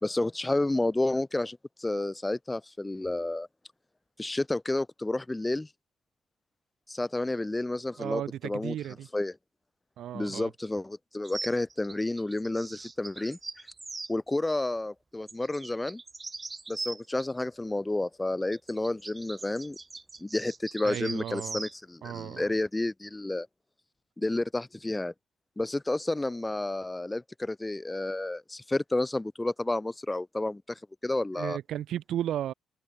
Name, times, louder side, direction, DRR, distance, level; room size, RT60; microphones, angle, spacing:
voice 1, 0.0-3.5 4.2-5.7 6.9-8.7 9.1-9.3 10.1-13.4 14.1-16.0 16.7-19.8 20.2-23.5 24.2-25.1 25.6-31.6, left 2 dB, 15° left, 0.5 m, -30 dB
voice 2, 8.0-9.1 10.0-10.5 20.8-21.6 22.0-22.5 31.3-32.5, right 11 dB, 75° right, 2.7 m, -34 dB
sound 1, 11.2-14.1 15.3-17.3 18.5-21.8, right 3 dB, 25° right, 0.9 m, -41 dB
cardioid pair, 90°, 0 cm